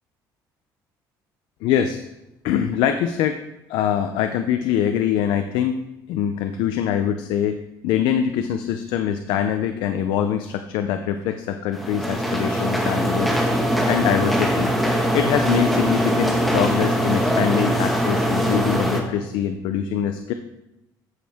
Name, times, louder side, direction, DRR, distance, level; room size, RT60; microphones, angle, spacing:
voice 1, 1.6-2.0 2.4-3.4 3.7-5.8 6.1-14.7 15.1-20.3, left 9 dB, 90° left, 8 dB, 0.5 m, -23 dB
sound 1, 11.7-19.0, equal, ahead, 1.4 m, -21 dB
14.0 x 6.3 x 3.5 m, 0.92 s
cardioid pair, 130°, 8 cm